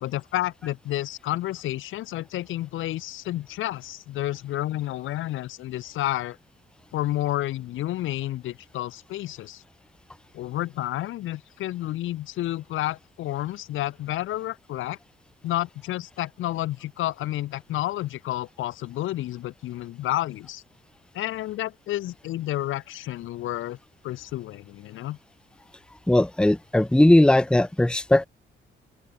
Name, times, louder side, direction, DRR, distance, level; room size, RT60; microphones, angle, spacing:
voice 1, 0.0-6.4 6.9-9.6 10.3-15.0 15.4-20.6 21.1-23.8 24.0-25.2, left 15 dB, 85° left, 2.1 m, -30 dB
voice 2, 26.1-28.3, left 1 dB, 5° left, 0.8 m, -18 dB
cardioid pair, 90°, 20 cm